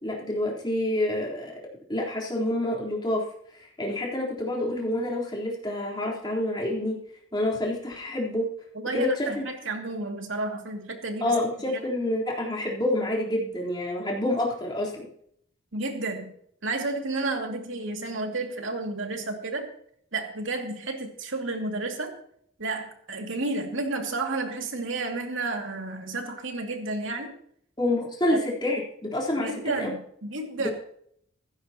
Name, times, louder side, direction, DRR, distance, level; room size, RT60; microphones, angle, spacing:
voice 1, 0.0-1.6 1.9-3.2 3.5-7.0 7.3-8.5 8.9-9.3 11.2-15.1 27.8-29.5 29.8-29.9 30.6-30.7, left 1 dB, 25° left, -3 dB, 3.8 m, -28 dB
voice 2, 8.7-11.4 15.7-16.3 16.6-19.7 20.1-22.1 22.6-27.4 28.2-28.4 29.4-30.7, right 2 dB, 90° right, 2 dB, 2.5 m, -31 dB
15.5 x 15.5 x 3.0 m, 0.66 s
head